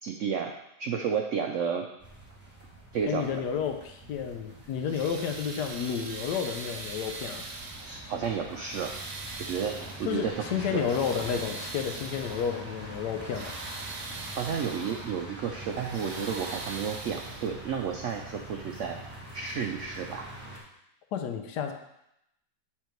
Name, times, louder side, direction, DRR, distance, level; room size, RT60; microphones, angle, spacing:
voice 1, 0.0-0.5 0.8-1.8 2.9-3.4 7.8-8.9 9.4-10.3 10.6-10.8 14.3-19.0 19.3-20.3, right 7 dB, 85° right, 3 dB, 0.6 m, -32 dB
sound 1, 2.0-20.6, right 1 dB, 5° right, 1.2 m, -44 dB
voice 2, 3.1-7.4 10.0-13.5 21.1-21.7, left 7 dB, 80° left, 5 dB, 1.3 m, -31 dB
sound 2, 4.7-8.2 8.6-10.2 10.6-12.6 13.1-15.1 15.6-17.7 18.8-18.9 19.5-19.6, right 3 dB, 55° right, 1.1 m, -42 dB
7.5 x 3.5 x 4.5 m, 0.83 s
omnidirectional pair, 1.8 m